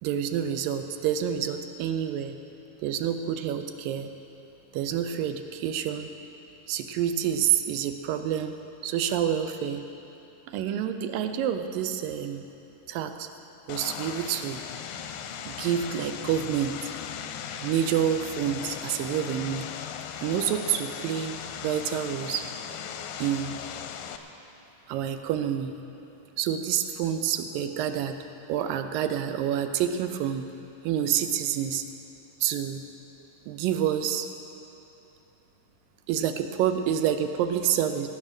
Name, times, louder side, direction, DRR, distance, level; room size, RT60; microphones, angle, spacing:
voice 1, 0.0-2.4 2.8-4.1 4.7-6.1 6.7-8.6 8.8-9.8 10.5-12.4 12.9-13.3 13.7-14.6 15.5-16.8 17.6-19.7 20.2-22.5 23.2-23.6 24.9-25.7 26.4-28.2 28.5-30.5 30.8-31.9 32.4-32.8 33.5-34.3 36.1-38.1, right 9 dB, 85° right, 8 dB, 2.4 m, -28 dB
Vehicle, 13.7-24.2, left 8 dB, 90° left, 2.3 m, -38 dB
18.5 x 9.1 x 6.1 m, 2.9 s
omnidirectional pair, 3.9 m